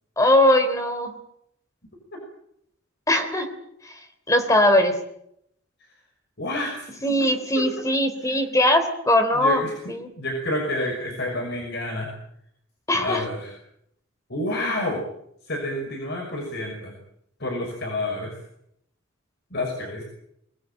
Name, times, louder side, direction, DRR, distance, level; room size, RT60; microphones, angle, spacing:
voice 1, 0.2-1.1 3.1-3.5 4.3-4.9 7.0-10.1 12.9-13.2, left 1 dB, 15° left, 7 dB, 3.3 m, -20 dB
voice 2, 6.4-7.3 7.6-7.7 8.3-8.4 9.3-12.1 12.9-13.6 14.3-15.1 15.5-16.9 17.4-18.3 19.5-20.0, left 1 dB, 55° left, 1 dB, 6.0 m, -29 dB
24.0 x 20.5 x 9.0 m, 0.75 s
head